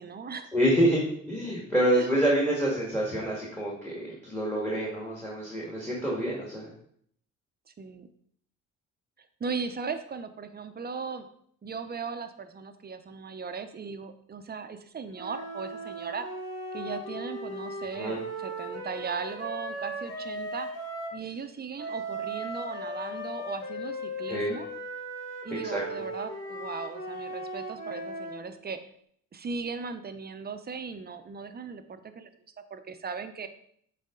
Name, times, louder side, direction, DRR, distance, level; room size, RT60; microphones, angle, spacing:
voice 1, 0.0-0.5 1.9-2.1 7.8-8.1 9.4-11.3 11.6-16.3 16.7-20.7 21.1-24.7 25.4-28.8 29.3-32.3 32.7-33.5, right 5 dB, 30° right, 9 dB, 0.7 m, -37 dB
voice 2, 0.5-6.7 18.0-18.2 24.3-24.6 25.6-25.8, right 1 dB, 10° left, -4 dB, 2.0 m, -27 dB
sound 1, 15.1-21.2 21.8-28.4, equal, 55° left, 2.5 m, -37 dB
8.0 x 4.2 x 3.8 m, 0.66 s
cardioid pair, 90°, 30 cm